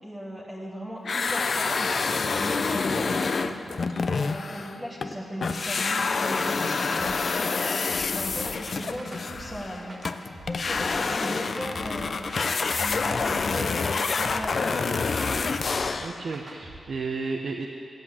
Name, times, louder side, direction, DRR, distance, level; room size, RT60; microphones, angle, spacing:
voice 1, 0.0-1.9 2.4-3.6 4.1-7.5 8.1-10.0 10.3-12.2 12.6-14.8, equal, ahead, -4 dB, 1.2 m, -37 dB
sound 1, 1.0-5.1 5.4-16.2, left 4 dB, 50° left, 0.5 m, -27 dB
voice 2, 2.9-3.2 16.0-17.7, right 4 dB, 60° right, 2 dB, 0.8 m, -33 dB
sound 2, 7.0-16.8, right 1 dB, 30° right, 1.4 m, -45 dB
14.5 x 8.0 x 9.7 m, 2.9 s
wide cardioid pair, 140°, 0 cm